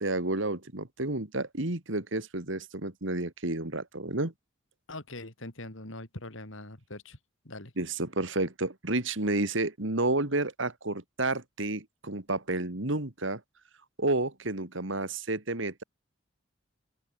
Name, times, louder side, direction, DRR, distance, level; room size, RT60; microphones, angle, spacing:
voice 1, 0.0-4.3 7.8-13.4 14.0-15.8, right 2 dB, 65° right, 2.4 m, -30 dB
voice 2, 4.9-7.2 7.4-7.7, left 2 dB, 70° left, 3.7 m, -42 dB
open air
head